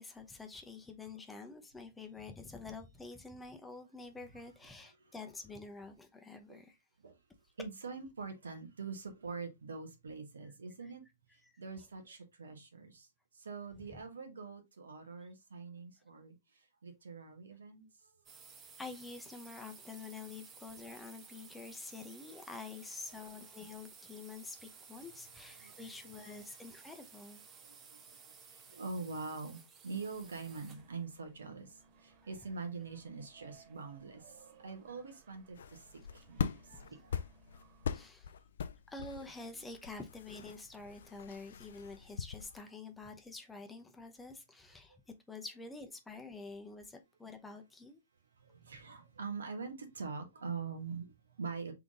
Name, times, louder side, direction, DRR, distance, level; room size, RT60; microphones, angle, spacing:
voice 1, 0.0-6.8 10.8-10.9 11.4-11.9 13.7-14.0 18.8-27.4 32.2-32.5 36.4-36.5 36.8-37.0 37.9-38.3 38.9-45.0 45.3-48.0, left 3 dB, 10° left, 0.8 m, -48 dB
voice 2, 7.6-11.0 11.6-13.1 13.3-18.1 25.6-26.3 27.6-35.8 36.1-36.4 37.0-37.2 44.9-45.0 48.4-51.7, right 4 dB, 75° right, 1.3 m, -44 dB
sound 1, 18.3-30.9, right 6 dB, 25° right, 0.9 m, -56 dB
sound 2, 29.9-38.1, right 6 dB, 45° right, 1.8 m, -64 dB
sound 3, 35.5-42.6, left 7 dB, 70° left, 0.4 m, -42 dB
3.7 x 3.6 x 3.6 m
hypercardioid pair, 115°, 0 cm